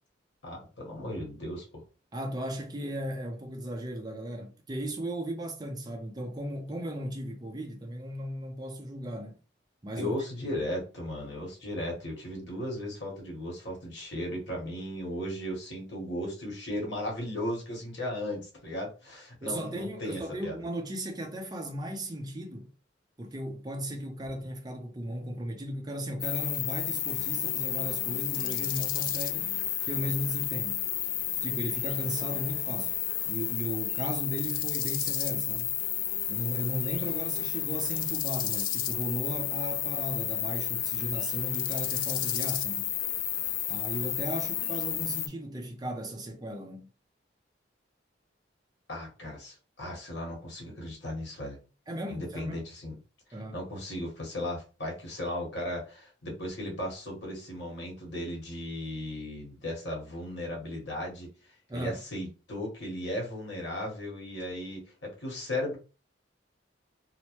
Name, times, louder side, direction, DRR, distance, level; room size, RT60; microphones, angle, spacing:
voice 1, 0.4-1.8 10.0-20.6 48.9-51.6 52.1-53.0 53.5-61.3 61.7-65.8, left 1 dB, 75° left, 1.3 m, -36 dB
voice 2, 2.1-9.4 9.8-10.2 19.4-22.7 23.2-29.6 29.9-30.8 31.4-32.9 33.2-35.7 36.3-42.9 43.7-46.9 51.9-52.6 53.3-53.6 61.7-62.0, right 1 dB, 20° right, 0.6 m, -36 dB
sound 1, 26.2-45.3, left 12 dB, 50° left, 0.3 m, -31 dB
2.9 x 2.1 x 3.0 m
head